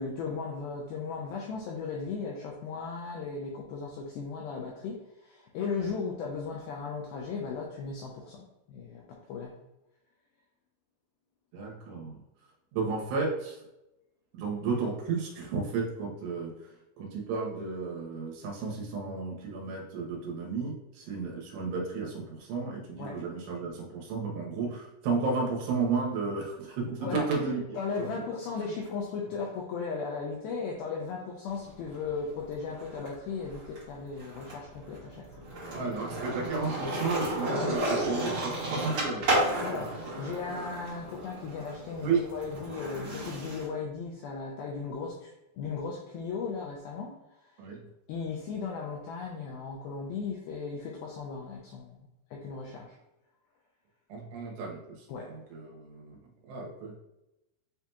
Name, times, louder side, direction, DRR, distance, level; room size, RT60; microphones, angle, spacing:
voice 1, 0.0-9.6 23.0-23.2 27.0-27.3 27.8-35.4 37.5-37.8 39.6-45.3 45.6-47.5 48.1-53.0 55.1-55.3, left 5 dB, 90° left, -1 dB, 2.1 m, -36 dB
voice 2, 11.5-12.2 12.7-13.6 14.3-28.1 35.7-39.9 42.0-42.2 47.6-47.8 54.1-56.2 56.5-56.9, right 4 dB, 80° right, -1 dB, 3.0 m, -33 dB
Skateboard, 31.5-33.1 33.4-43.7, right 1 dB, 55° right, 1.5 m, -33 dB
8.2 x 2.8 x 2.3 m, 0.94 s
omnidirectional pair, 4.9 m